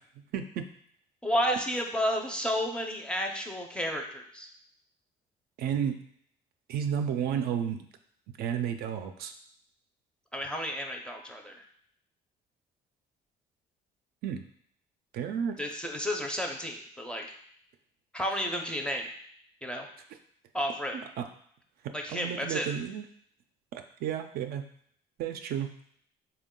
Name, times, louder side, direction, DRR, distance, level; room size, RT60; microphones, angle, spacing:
voice 1, 0.3-0.7 5.6-6.0 6.7-7.9 8.4-9.3 14.2-14.4 15.1-15.6 21.2-21.3 22.1-23.0 23.7-24.7 25.2-25.7, right 8 dB, 65° right, 6 dB, 0.4 m, -32 dB
voice 2, 1.2-4.5 10.3-11.6 15.6-17.3 18.1-19.1 19.6-19.9 20.5-21.0 21.9-22.7, equal, 5° left, 2 dB, 0.5 m, -31 dB
3.6 x 2.2 x 3.6 m, 0.65 s
cardioid pair, 110°, 17 cm